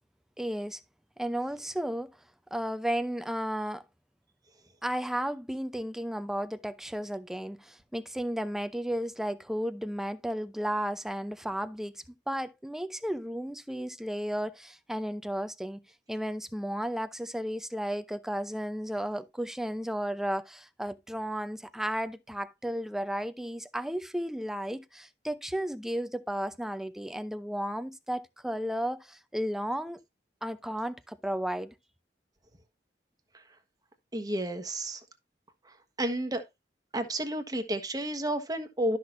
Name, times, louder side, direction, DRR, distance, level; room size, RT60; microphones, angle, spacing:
voice 1, 0.4-0.8 1.2-2.1 2.5-3.8 4.8-15.8 16.1-30.0 30.4-31.7, equal, 5° right, 0.6 m, -33 dB
voice 2, 34.1-35.0 35.6-36.4 36.9-39.0, right 1 dB, 20° right, 1.3 m, -31 dB
12.0 x 6.0 x 2.6 m
head